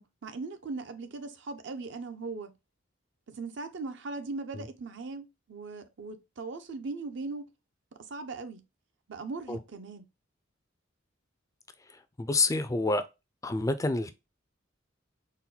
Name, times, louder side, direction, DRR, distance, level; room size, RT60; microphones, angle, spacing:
voice 1, 0.0-2.5 3.3-7.5 7.9-8.6 9.1-10.1, right 3 dB, 65° right, 0.6 m, -39 dB
voice 2, 12.2-13.0 13.4-14.1, left 3 dB, 15° left, 0.3 m, -27 dB
4.2 x 2.1 x 3.8 m
head